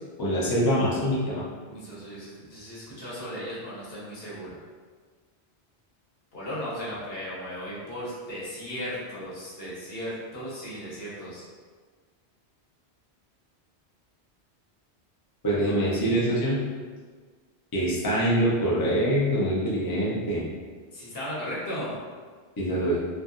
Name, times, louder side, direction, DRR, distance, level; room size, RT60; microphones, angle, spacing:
voice 1, 0.2-1.4 15.4-16.6 17.7-20.4 22.6-23.0, right 1 dB, 35° left, -6 dB, 0.3 m, -24 dB
voice 2, 1.7-4.6 6.3-11.4 15.7-15.8 20.9-22.0, equal, 65° left, -7 dB, 1.0 m, -36 dB
2.7 x 2.4 x 2.4 m, 1.5 s
omnidirectional pair, 1.1 m